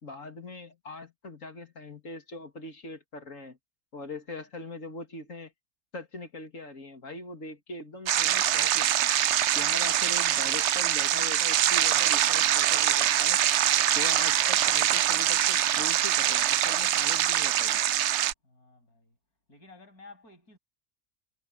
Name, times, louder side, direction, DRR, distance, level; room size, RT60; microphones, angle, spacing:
voice 1, 0.0-3.6 3.9-5.5 5.9-9.1 9.5-13.4 13.9-17.8, left 2 dB, 60° left, 2.7 m, -41 dB
sound 1, 8.1-18.3, right 11 dB, 60° right, 0.8 m, -24 dB
voice 2, 18.4-19.2 19.5-20.6, left 3 dB, 90° left, 8.5 m, -53 dB
omnidirectional pair, 1.5 m